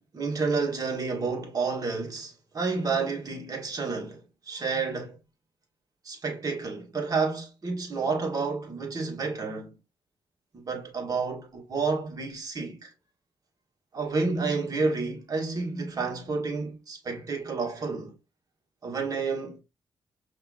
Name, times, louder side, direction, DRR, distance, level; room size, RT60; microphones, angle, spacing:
voice 1, 0.1-5.2 6.1-9.8 10.5-12.9 13.9-18.2 18.8-19.6, right 4 dB, 45° right, 1.7 m, -30 dB
5.6 x 3.0 x 2.5 m
cardioid pair, 75°, 9 cm